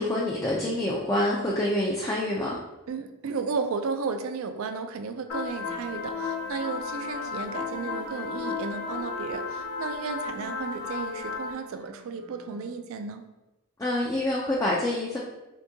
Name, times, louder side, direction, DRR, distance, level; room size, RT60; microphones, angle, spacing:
voice 1, 0.0-2.6 13.8-15.2, left 1 dB, 15° left, -4 dB, 0.3 m, -26 dB
voice 2, 2.9-13.3, right 4 dB, 65° right, 7 dB, 0.3 m, -34 dB
sound 1, 5.3-11.5, left 5 dB, 80° left, 0.6 m, -34 dB
Wind instrument woodwind instrument, 5.6-13.0, right 4 dB, 85° right, 0.7 m, -46 dB
3.6 x 2.6 x 2.6 m, 1.0 s
head